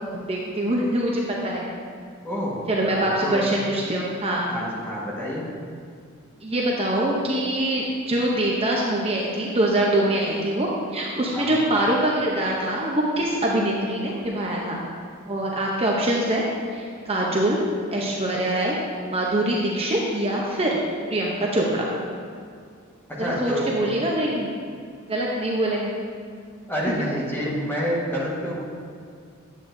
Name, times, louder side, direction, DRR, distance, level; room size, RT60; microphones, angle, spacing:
voice 1, 0.1-1.7 2.7-4.5 6.4-14.8 15.3-16.4 16.7-17.6 17.9-18.7 19.1-20.8 21.1-21.9 23.2-24.5 25.1-25.9, right 1 dB, 30° right, -3 dB, 0.7 m, -24 dB
voice 2, 2.2-3.5 4.5-5.5 11.3-11.6 23.1-23.8 26.7-28.6, equal, 10° left, -5 dB, 1.4 m, -28 dB
9.1 x 8.0 x 2.6 m, 2.3 s
head